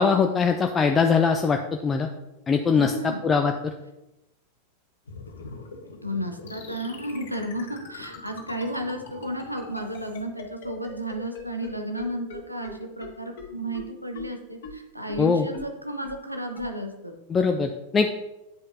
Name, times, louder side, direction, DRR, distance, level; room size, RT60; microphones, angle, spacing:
voice 1, 0.0-2.1 2.5-2.9 3.2-3.7 15.2-15.5 17.3-18.1, left 5 dB, 20° left, 5 dB, 0.4 m, -22 dB
voice 2, 2.7-3.2 6.0-17.2, right 1 dB, 90° right, 4 dB, 0.8 m, -33 dB
sound 1, 5.1-10.2, left 3 dB, 70° left, 0.9 m, -45 dB
sound 2, 6.5-11.7 12.0-12.1 12.3-12.4 12.6-12.7 13.0-13.1 13.4-13.5 13.7-13.8 14.1-14.2 14.6-14.7 15.1-15.2 15.5-15.6 16.0-16.1 16.5-16.7, left 6 dB, 55° left, 2.0 m, -40 dB
9.2 x 5.1 x 2.7 m, 0.95 s
figure-of-eight pair, 90°, 0 cm